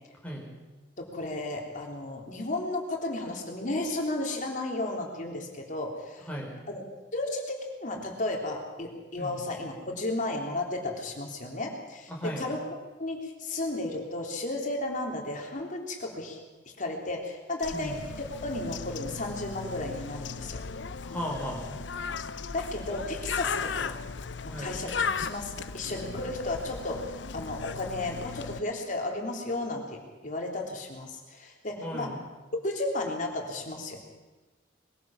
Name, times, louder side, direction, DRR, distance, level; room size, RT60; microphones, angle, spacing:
voice 1, 1.0-6.3 6.7-6.8 7.1-7.5 7.8-12.6 13.0-16.4 16.8-18.0 18.4-20.6 22.5-24.0 24.4-32.1 32.6-34.0, left 2 dB, 45° left, 1 dB, 3.6 m, -33 dB
voice 2, 12.1-12.5 17.7-18.0 21.0-21.8 24.5-24.7 31.8-32.2, equal, 10° left, -3 dB, 5.3 m, -36 dB
Bird, 17.6-28.6, left 5 dB, 75° left, 0.7 m, -36 dB
22.0 x 16.0 x 7.4 m, 1.2 s
head